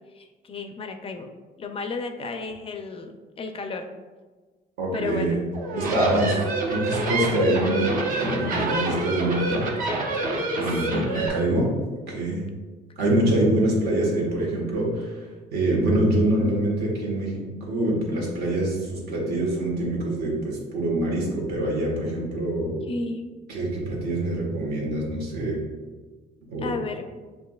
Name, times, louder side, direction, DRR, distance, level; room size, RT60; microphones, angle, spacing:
voice 1, 0.1-1.3 1.6-3.9 4.9-5.4 5.9-6.4 10.6-11.3 16.4-16.7 22.9-23.3 26.6-27.1, left 3 dB, 35° left, 5 dB, 0.4 m, -33 dB
voice 2, 4.8-5.4 5.7-6.3 6.7-9.6 10.5-11.7 12.1-12.4 13.0-22.8 23.5-25.6 26.5-26.8, right 1 dB, 70° right, -3 dB, 1.4 m, -25 dB
sound 1, 5.5-11.3, right 2 dB, 55° right, 0.9 m, -27 dB
6.9 x 2.6 x 2.3 m, 1.3 s
cardioid pair, 110°, 17 cm